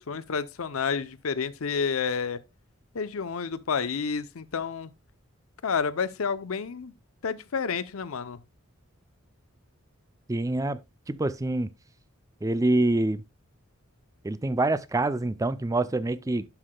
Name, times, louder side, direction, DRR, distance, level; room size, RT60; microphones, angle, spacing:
voice 1, 0.0-2.4 2.9-4.9 5.6-6.9 7.2-8.4, left 5 dB, 85° left, 0.6 m, -30 dB
voice 2, 10.3-10.8 11.1-11.7 12.4-13.2 14.2-16.5, right 2 dB, 15° right, 0.4 m, -26 dB
11.5 x 5.7 x 2.2 m
head